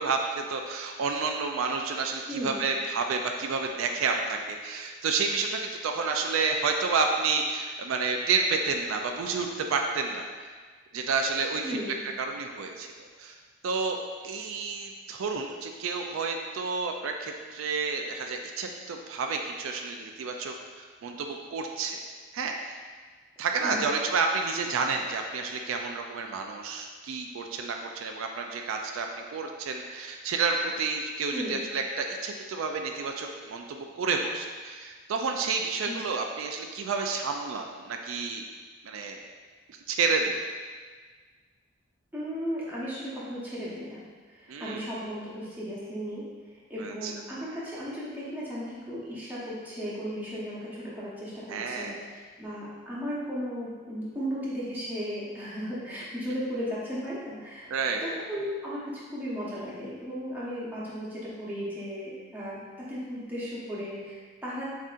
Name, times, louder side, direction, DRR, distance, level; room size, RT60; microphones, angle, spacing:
voice 1, 0.0-10.5 10.9-11.8 12.2-12.9 13.2-13.4 13.6-14.0 14.2-22.0 22.3-22.8 23.4-29.1 29.3-38.4 38.8-39.2 39.9-40.3 44.5-44.8 46.8-47.1 51.5-51.9 57.7-58.2, right 4 dB, 80° right, 3 dB, 0.4 m, -30 dB
voice 2, 2.3-2.6 11.6-12.0 23.6-23.9 31.3-31.6 35.8-36.0 42.1-46.3 46.5-52.1 52.4-57.7 58.0-64.6, equal, 10° right, -8 dB, 0.9 m, -35 dB
7.2 x 2.7 x 2.5 m, 1.5 s
head